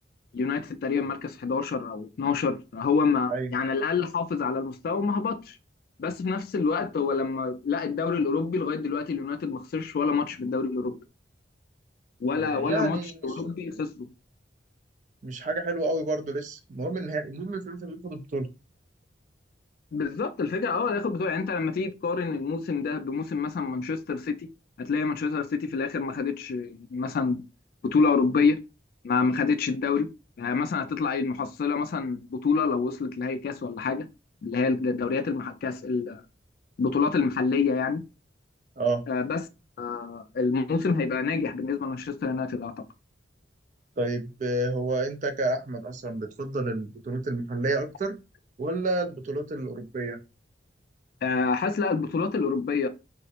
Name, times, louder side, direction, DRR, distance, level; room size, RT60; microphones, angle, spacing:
voice 1, 0.3-5.6 6.0-11.0 12.2-14.1 19.9-24.5 24.8-27.4 27.8-28.6 29.0-30.1 30.4-34.1 34.4-36.2 36.8-38.0 39.1-39.4 39.8-42.8 51.2-52.9, left 4 dB, 55° left, 0.3 m, -27 dB
voice 2, 12.4-13.1 13.6-13.7 15.2-18.5 38.8-39.1 44.0-48.1 48.6-50.2, right 2 dB, 45° right, 0.4 m, -30 dB
2.4 x 2.0 x 2.8 m
head